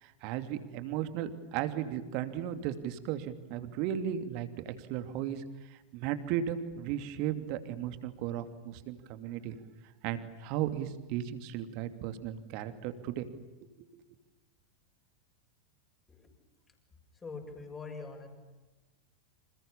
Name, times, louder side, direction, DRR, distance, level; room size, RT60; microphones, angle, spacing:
voice 1, 0.0-5.4 5.7-9.6 10.0-13.3 13.8-13.9, right 10 dB, 45° right, 10 dB, 2.7 m, -35 dB
voice 2, 17.2-18.3, left 4 dB, 15° left, 4 dB, 7.3 m, -43 dB
30.0 x 27.5 x 7.2 m, 1.1 s
figure-of-eight pair, 90°, 0 cm